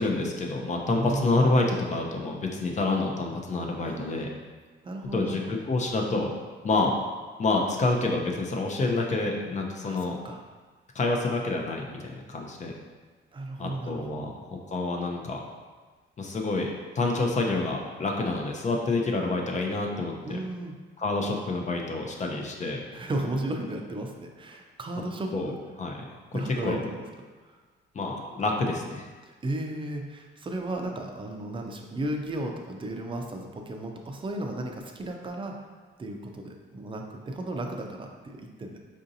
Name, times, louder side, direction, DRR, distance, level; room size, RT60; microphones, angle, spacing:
voice 1, 0.0-4.3 5.1-6.3 6.6-6.9 7.4-10.2 10.9-12.7 13.6-15.4 16.2-16.7 17.0-20.4 21.0-22.8 25.3-25.5 25.8-25.9 26.3-26.8 27.9-29.1, left 2 dB, 35° left, 1 dB, 0.5 m, -28 dB
voice 2, 0.9-1.2 3.9-4.3 4.8-5.6 9.8-10.4 13.3-14.3 20.2-20.7 22.9-25.6 26.3-27.0 27.4-27.6 29.2-35.6 36.0-38.8, right 1 dB, 25° right, 3 dB, 0.5 m, -34 dB
4.8 x 2.6 x 2.6 m, 1.4 s
cardioid pair, 90°, 20 cm